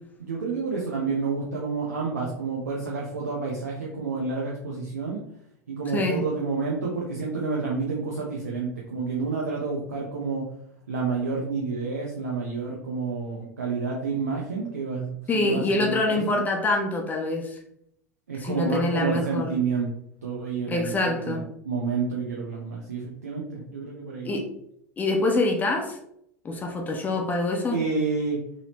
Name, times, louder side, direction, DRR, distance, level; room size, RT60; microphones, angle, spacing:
voice 1, 0.2-5.2 5.7-10.4 10.9-16.4 18.3-19.9 20.2-24.4 27.7-28.4, right 4 dB, 75° right, -3 dB, 0.8 m, -29 dB
voice 2, 5.9-6.2 15.3-17.6 18.4-19.5 20.7-21.4 24.2-24.5 25.0-26.0 26.4-27.8, left 2 dB, 20° left, 1 dB, 0.7 m, -25 dB
4.0 x 3.0 x 2.9 m, 0.72 s
figure-of-eight pair, 80°, 8 cm